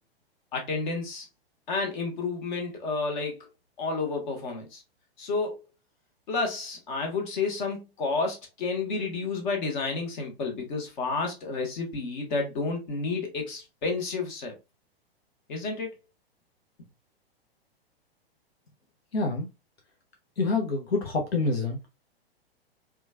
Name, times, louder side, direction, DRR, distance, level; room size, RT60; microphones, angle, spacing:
voice 1, 0.5-1.3 1.7-3.5 3.8-4.8 5.2-5.6 6.3-14.5 15.5-15.9, left 4 dB, 50° left, 1.0 m, -30 dB
voice 2, 19.1-19.5 20.4-21.8, left 3 dB, 80° left, 0.6 m, -27 dB
2.9 x 2.3 x 2.3 m
figure-of-eight pair, 105°, 31 cm